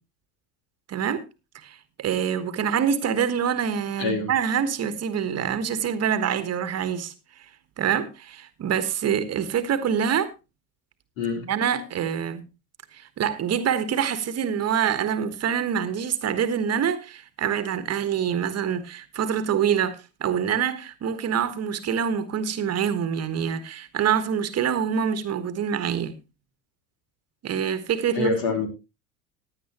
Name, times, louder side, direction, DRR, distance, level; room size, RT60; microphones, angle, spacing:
voice 1, 0.9-1.2 1.6-7.1 7.8-10.3 11.4-12.4 12.9-26.1 27.4-28.3, right 8 dB, 35° right, 1.4 m, -25 dB
voice 2, 4.0-4.3 11.2-11.5 28.2-28.7, left 4 dB, 70° left, 3.9 m, -25 dB
16.0 x 10.0 x 3.0 m
hypercardioid pair, 75°, 41 cm